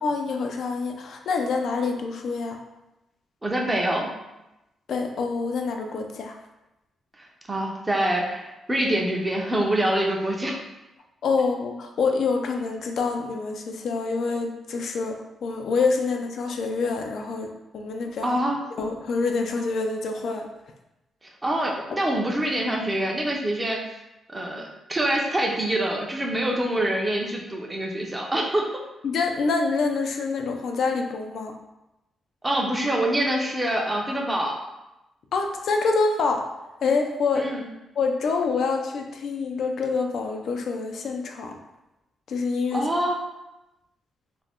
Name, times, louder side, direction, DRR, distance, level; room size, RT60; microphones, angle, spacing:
voice 1, 0.0-2.6 4.9-6.4 11.2-18.4 18.8-20.5 29.0-31.5 35.3-36.5 36.8-37.5 38.0-41.6 42.3-42.9, left 4 dB, 65° left, 3 dB, 0.3 m, -26 dB
voice 2, 3.4-4.1 7.2-10.6 18.2-18.6 21.4-23.8 24.3-28.7 32.4-34.6 37.4-37.7 42.7-43.2, right 1 dB, 15° right, 0 dB, 0.5 m, -25 dB
2.5 x 2.1 x 3.4 m, 0.95 s
cardioid pair, 110°, 0 cm